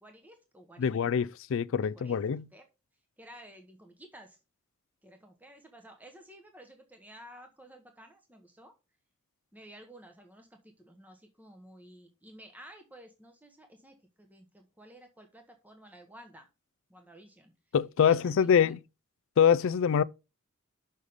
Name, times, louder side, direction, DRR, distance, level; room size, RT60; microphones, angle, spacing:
voice 1, 0.0-1.2 1.8-2.2 2.5-2.6 3.2-4.4 5.0-8.7 9.5-16.5 16.9-17.5 18.0-18.8, equal, 10° right, 1.1 m, -53 dB
voice 2, 0.8-2.5 17.7-18.8 19.4-20.0, left 7 dB, 65° left, 0.4 m, -24 dB
6.5 x 5.5 x 5.0 m
head